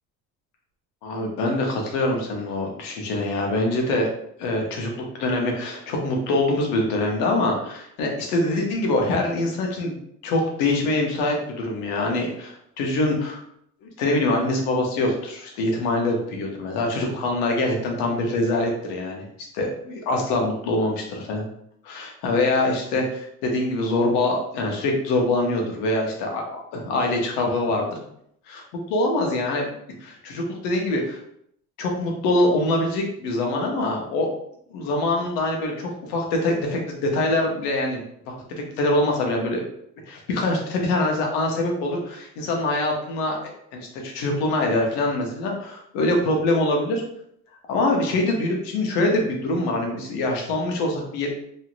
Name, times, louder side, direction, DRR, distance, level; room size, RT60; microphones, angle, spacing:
voice 1, 1.0-4.1 4.4-10.0 10.2-13.4 13.8-19.2 19.5-21.5 21.8-28.0 28.5-28.6 28.9-29.7 30.0-31.2 31.8-34.3 34.7-38.0 38.3-39.6 40.1-47.0 47.7-51.3, left 2 dB, 85° left, 1 dB, 0.9 m, -24 dB
3.1 x 2.7 x 2.5 m, 0.71 s
supercardioid pair, 85°, 37 cm